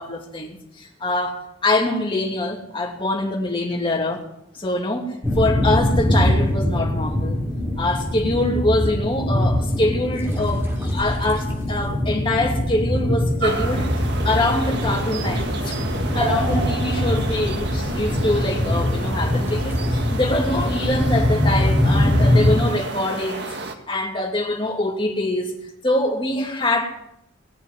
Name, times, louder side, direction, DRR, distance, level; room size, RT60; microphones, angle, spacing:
voice 1, 0.0-4.2 4.5-7.4 7.8-15.8 16.1-23.5 23.9-25.5 25.8-27.1, left 1 dB, 25° left, 2.7 m, -24 dB
sound 1, 5.2-22.6, left 1 dB, 10° right, 2.9 m, -22 dB
sound 2, 13.4-23.8, right 2 dB, 55° right, 1.7 m, -31 dB
20.0 x 7.0 x 9.4 m
head